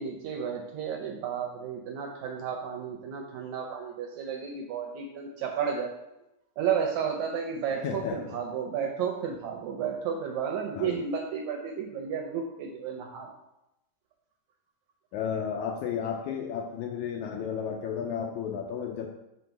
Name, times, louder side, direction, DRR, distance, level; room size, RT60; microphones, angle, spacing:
voice 1, 0.0-6.0 6.6-13.3, right 7 dB, 75° right, 2 dB, 1.8 m, -32 dB
voice 2, 7.8-8.4 10.8-11.0 15.1-19.1, left 7 dB, 80° left, 2 dB, 1.7 m, -33 dB
5.3 x 3.9 x 5.8 m, 0.89 s
omnidirectional pair, 3.8 m